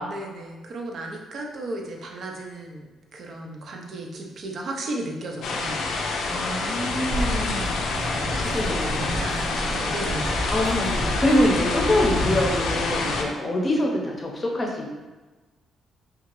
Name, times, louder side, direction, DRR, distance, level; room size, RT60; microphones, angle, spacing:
voice 1, 0.1-5.8 7.6-7.8 8.2-10.5, right 2 dB, 55° right, 1 dB, 0.5 m, -35 dB
sound 1, 5.4-13.2, left 3 dB, 75° left, 0.4 m, -27 dB
voice 2, 6.3-7.9 8.2-9.4 10.5-14.9, left 1 dB, 30° left, 0 dB, 0.6 m, -25 dB
sound 2, 7.1-13.2, right 1 dB, 25° right, 0.7 m, -31 dB
2.8 x 2.3 x 3.0 m, 1.2 s
cardioid pair, 90°, 0 cm